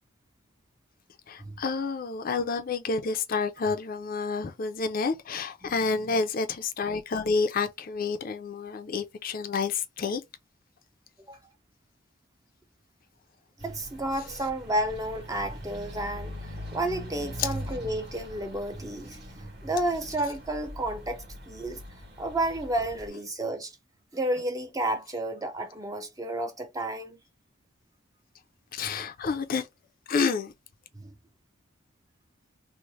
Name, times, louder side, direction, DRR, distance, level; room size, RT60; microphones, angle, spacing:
voice 1, 1.3-10.2 17.4-17.5 28.7-29.7 30.1-30.5, left 4 dB, 45° left, 0.4 m, -29 dB
voice 2, 5.6-6.2 11.3-11.4 13.6-21.8 22.2-23.8 24.1-27.2 28.9-29.0 30.9-31.1, right 1 dB, 15° right, 0.5 m, -32 dB
sound 1, 13.6-23.1, equal, 55° right, 1.4 m, -42 dB
3.1 x 2.0 x 3.9 m
head